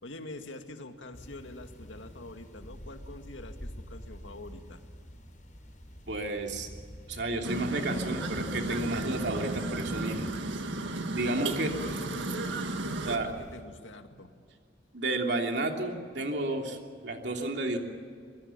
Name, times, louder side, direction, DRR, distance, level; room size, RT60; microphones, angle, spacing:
voice 1, 0.0-4.8 11.3-14.3, left 2 dB, 85° left, 6 dB, 2.1 m, -45 dB
sound 1, 1.1-13.6, equal, 40° left, 6.4 m, -47 dB
voice 2, 6.1-6.7 7.1-10.3 11.1-11.7 13.0-13.3 14.9-16.8 17.0-17.8, right 2 dB, 60° right, 2 dB, 3.1 m, -31 dB
sound 2, 7.4-13.2, right 2 dB, 80° right, 1.7 m, -34 dB
24.0 x 22.0 x 7.3 m, 2.1 s
head